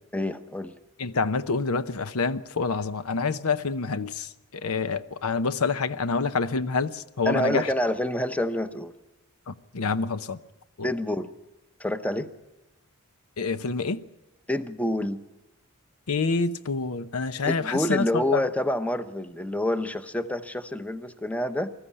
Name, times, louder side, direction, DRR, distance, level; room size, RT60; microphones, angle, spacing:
voice 1, 0.1-0.8 7.2-8.9 10.8-11.3 11.8-12.3 14.5-15.2 17.4-21.7, left 1 dB, 5° left, 0.7 m, -27 dB
voice 2, 1.0-7.7 9.5-10.4 10.8-10.9 13.4-14.0 16.1-18.4, left 4 dB, 80° left, 0.8 m, -27 dB
20.0 x 14.0 x 9.8 m
head